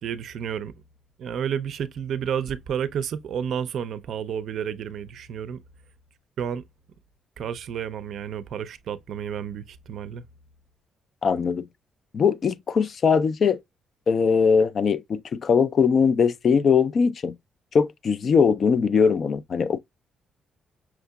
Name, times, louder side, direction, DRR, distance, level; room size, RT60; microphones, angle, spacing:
voice 1, 0.0-0.7 1.2-5.6 6.4-6.6 7.4-10.2, right 8 dB, 70° right, 0.4 m, -31 dB
voice 2, 11.2-11.7 12.1-13.6 14.1-17.4 17.7-19.8, left 6 dB, 50° left, 0.4 m, -21 dB
5.8 x 2.8 x 2.2 m
cardioid pair, 90°, 0 cm